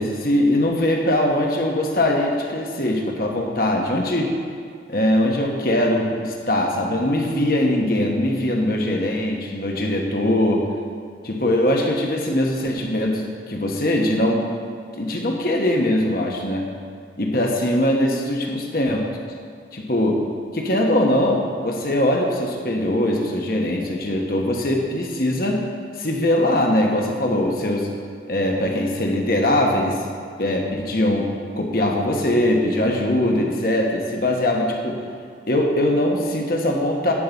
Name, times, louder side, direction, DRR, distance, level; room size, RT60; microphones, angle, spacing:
voice 1, 0.0-4.3 4.9-10.6 11.2-14.5 15.0-16.6 17.2-19.1 19.7-20.2 20.5-25.6 26.0-27.9 28.3-30.0 30.4-35.0 35.5-37.1, left 1 dB, 55° left, 1 dB, 1.3 m, -21 dB
11.0 x 4.8 x 8.2 m, 2.1 s
head